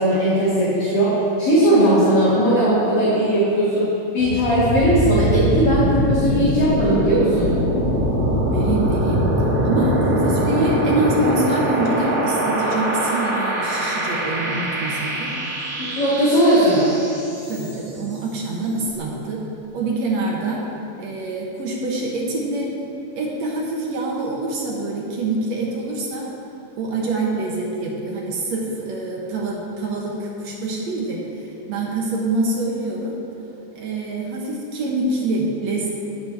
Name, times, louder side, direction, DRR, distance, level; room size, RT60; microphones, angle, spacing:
voice 1, 0.0-3.9 4.1-7.5 16.0-16.9, right 1 dB, 45° left, -11 dB, 2.9 m, -18 dB
sound 1, 4.2-18.0, equal, 40° right, 1.9 m, -22 dB
voice 2, 8.5-9.3 9.6-15.3 17.5-19.5 19.7-20.7 21.0-22.7 23.2-26.3 26.8-33.1 33.8-35.9, right 2 dB, 60° right, -2 dB, 2.0 m, -25 dB
18.0 x 7.0 x 3.5 m, 2.9 s
omnidirectional pair, 3.9 m